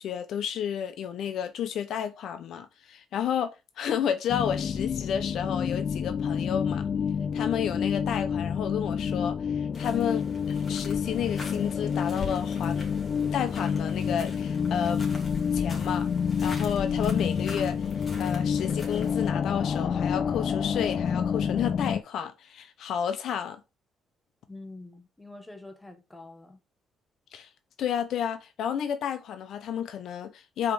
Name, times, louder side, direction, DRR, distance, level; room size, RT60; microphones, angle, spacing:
voice 1, 0.0-6.8 7.3-12.9 13.3-15.0 15.5-16.1 16.4-17.9 18.2-23.6 27.3-27.5 27.8-30.7, left 8 dB, 75° left, 0.8 m, -31 dB
sound 1, 4.3-22.0, left 7 dB, 55° left, 0.4 m, -28 dB
sound 2, 9.7-19.3, left 4 dB, 30° left, 2.7 m, -42 dB
voice 2, 24.5-26.6, left 2 dB, 10° left, 1.4 m, -46 dB
4.9 x 4.5 x 5.0 m
cardioid pair, 90°, 0 cm